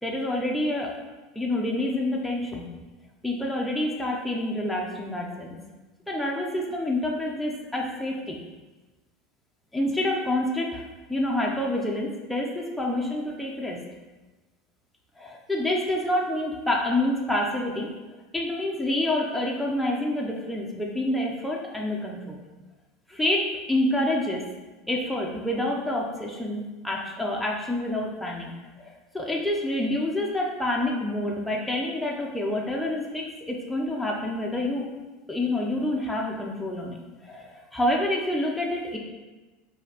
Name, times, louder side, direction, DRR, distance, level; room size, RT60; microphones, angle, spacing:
voice 1, 0.0-0.9 1.4-2.7 3.2-5.5 6.1-8.4 9.7-13.8 15.2-17.9 18.3-22.4 23.1-24.4 24.9-28.5 28.8-34.9 35.3-39.0, left 1 dB, ahead, -2 dB, 0.4 m, -27 dB
4.9 x 2.7 x 2.8 m, 1.2 s
supercardioid pair, 160°, 0 cm